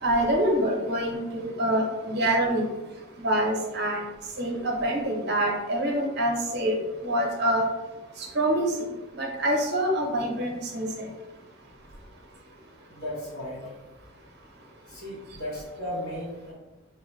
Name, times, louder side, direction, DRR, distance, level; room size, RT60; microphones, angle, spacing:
voice 1, 0.0-2.6 3.2-4.0 4.4-7.7 8.3-8.7 9.1-11.1, right 1 dB, 50° right, 0 dB, 0.7 m, -26 dB
voice 2, 12.9-13.7 14.9-16.5, left 1 dB, 80° left, -7 dB, 1.3 m, -35 dB
4.4 x 2.2 x 3.1 m, 1.1 s
head